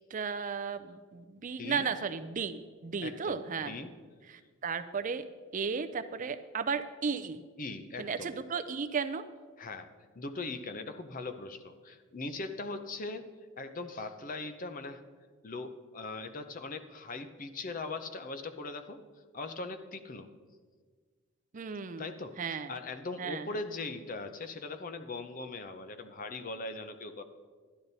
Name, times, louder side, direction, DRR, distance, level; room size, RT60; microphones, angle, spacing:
voice 1, 0.1-3.8 4.3-5.3 5.5-7.4 8.0-9.3 21.5-22.1 22.4-22.8 23.2-23.5, right 5 dB, 35° right, 10 dB, 0.4 m, -35 dB
voice 2, 1.4-1.9 3.0-3.9 7.6-8.4 9.6-13.3 13.6-15.0 15.4-19.0 19.3-20.3 22.0-27.2, left 3 dB, 40° left, 9 dB, 0.7 m, -40 dB
12.0 x 10.5 x 4.0 m, 1.5 s
head